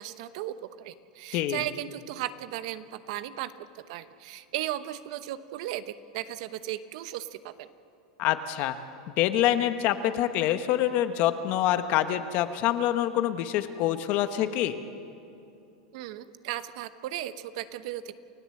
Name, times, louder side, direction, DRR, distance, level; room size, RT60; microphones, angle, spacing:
voice 1, 0.0-7.7 15.9-18.1, right 13 dB, 65° right, 12 dB, 1.0 m, -36 dB
voice 2, 1.3-1.6 8.2-8.8 9.2-14.8, left 12 dB, 45° left, 10 dB, 1.2 m, -26 dB
29.0 x 16.0 x 7.8 m, 2.7 s
supercardioid pair, 145°, 4 cm